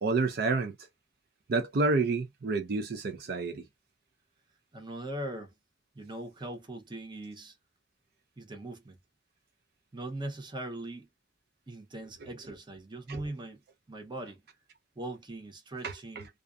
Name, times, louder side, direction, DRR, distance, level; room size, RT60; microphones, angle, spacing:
voice 1, 0.0-0.7 1.5-3.6 13.1-13.2 15.8-15.9, right 3 dB, 60° right, 0.4 m, -29 dB
voice 2, 4.7-5.5 5.9-7.6 8.4-9.0 9.9-11.1 11.7-13.6 13.9-14.4 15.0-16.3, right 1 dB, 25° right, 0.7 m, -40 dB
2.5 x 2.3 x 2.3 m
head